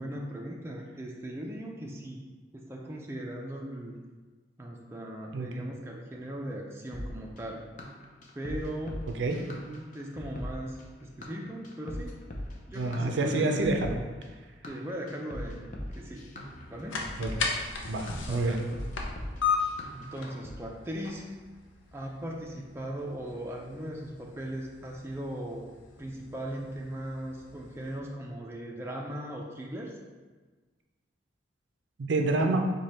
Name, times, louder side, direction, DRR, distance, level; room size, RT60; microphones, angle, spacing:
voice 1, 0.0-2.2 2.5-3.9 4.6-7.6 8.3-9.0 9.3-12.2 12.7-13.7 14.7-16.2 16.7-17.1 18.3-18.6 19.9-21.3 21.9-25.6 26.0-29.9, right 1 dB, 15° right, -1 dB, 0.4 m, -38 dB
voice 2, 5.3-5.7 9.2-9.4 12.7-14.0 17.2-17.5 17.9-18.6 32.0-32.6, right 2 dB, 75° right, 3 dB, 0.5 m, -28 dB
sound 1, 6.9-20.6, left 1 dB, 40° left, 0.5 m, -41 dB
sound 2, 16.3-28.0, left 5 dB, 85° left, 0.6 m, -37 dB
4.9 x 2.2 x 4.1 m, 1.4 s
head